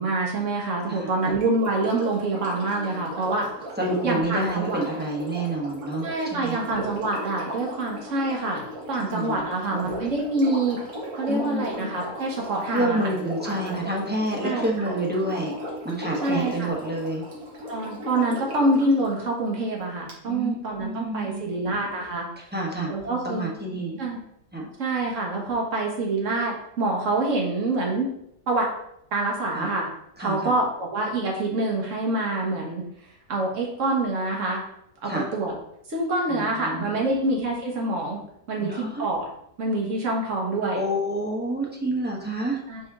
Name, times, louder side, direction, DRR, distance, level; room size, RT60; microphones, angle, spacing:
voice 1, 0.0-3.5 4.0-4.8 6.0-10.8 11.2-13.1 13.4-13.8 14.4-14.6 16.2-16.7 17.7-22.3 22.9-23.5 24.0-24.2 24.8-28.1 28.5-28.6 29.1-29.9 30.2-32.8 33.3-34.6 35.0-35.5 35.9-38.2 38.5-39.2 39.6-40.8 42.7-42.8, right 2 dB, 60° right, -1 dB, 1.7 m, -26 dB
voice 2, 0.9-1.4 3.8-6.7 9.0-9.9 11.3-11.8 12.7-15.5 15.8-17.2 20.2-21.7 22.5-22.9 23.2-24.0 24.5-24.7 29.5-29.7 30.2-30.5 35.0-35.3 36.3-37.2 38.6-39.0 40.2-40.3 40.7-42.6, right 1 dB, 10° right, -3 dB, 1.0 m, -29 dB
Sink (filling or washing), 1.1-18.9 20.1-20.2, equal, 80° right, 1.9 m, -37 dB
5.4 x 5.1 x 3.6 m, 0.76 s
omnidirectional pair, 1.5 m